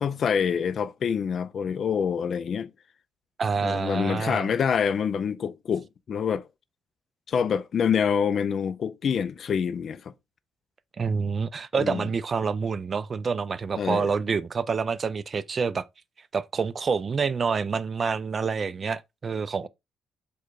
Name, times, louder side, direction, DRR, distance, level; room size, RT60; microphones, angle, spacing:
voice 1, 0.0-2.7 3.6-6.5 7.3-10.1 11.8-12.1 13.8-14.1, left 7 dB, 45° left, 0.3 m, -26 dB
voice 2, 3.4-4.5 11.0-15.8 16.3-19.7, right 5 dB, 35° right, 0.3 m, -27 dB
4.7 x 2.2 x 4.6 m
cardioid pair, 130°, 0 cm